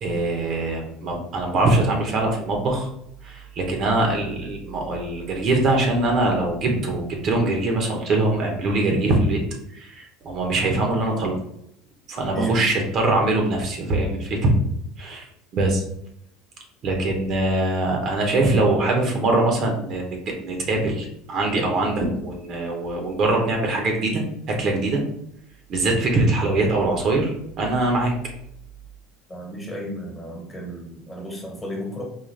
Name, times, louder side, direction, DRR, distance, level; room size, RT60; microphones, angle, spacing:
voice 1, 0.0-2.9 3.2-9.4 9.7-11.3 12.1-14.5 15.0-15.2 15.5-15.8 16.8-24.2 24.5-25.0 25.7-27.3 27.6-28.1, right 2 dB, 50° right, 1 dB, 0.9 m, -22 dB
voice 2, 29.3-32.0, right 1 dB, 15° left, -1 dB, 1.3 m, -33 dB
4.0 x 2.3 x 3.2 m, 0.75 s
supercardioid pair, 90°, 0 cm